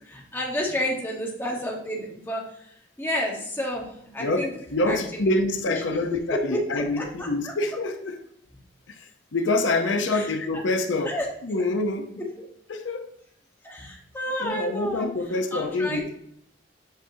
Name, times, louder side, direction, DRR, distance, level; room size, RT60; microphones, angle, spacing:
voice 1, 0.0-4.5 4.8-5.0 5.7-7.5 10.1-10.3 11.0-11.3 12.2-12.4 13.6-15.1 15.5-16.2, equal, 10° left, 1.3 m, -31 dB
voice 2, 4.2-8.2 8.9-11.2 11.4-12.2 12.7-13.1 14.4-16.2, left 2 dB, 80° left, 0.7 m, -26 dB
8.1 x 5.0 x 2.7 m
head